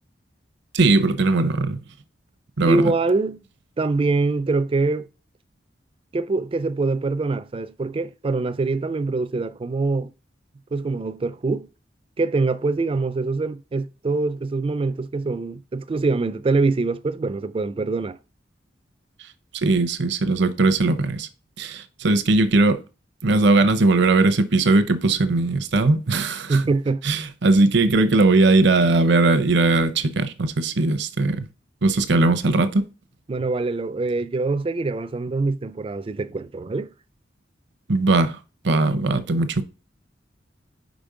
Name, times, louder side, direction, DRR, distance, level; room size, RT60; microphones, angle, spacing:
voice 1, 0.7-1.8 2.6-2.9 19.5-21.3 21.6-22.8 23.2-26.6 27.0-31.5 31.8-32.9 37.9-38.4 38.6-39.6, right 2 dB, 65° right, 0.7 m, -19 dB
voice 2, 2.7-3.4 3.8-5.1 6.1-10.1 10.7-11.7 12.2-18.2 26.5-27.0 33.3-36.9, right 3 dB, 30° right, 0.4 m, -24 dB
5.1 x 4.9 x 3.7 m
head